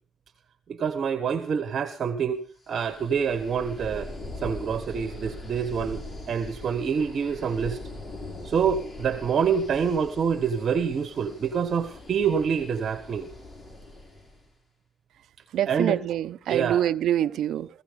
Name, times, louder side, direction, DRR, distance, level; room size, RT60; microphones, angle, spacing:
voice 1, 0.7-2.4 2.7-4.1 4.4-7.8 8.4-13.3 15.7-16.0 16.5-16.9, right 7 dB, 55° right, 1.4 m, -26 dB
sound 1, 2.7-14.4, left 2 dB, 20° left, 5.1 m, -41 dB
voice 2, 15.5-17.7, right 11 dB, 75° right, 0.7 m, -25 dB
16.5 x 16.0 x 5.2 m
cardioid pair, 90°, 0 cm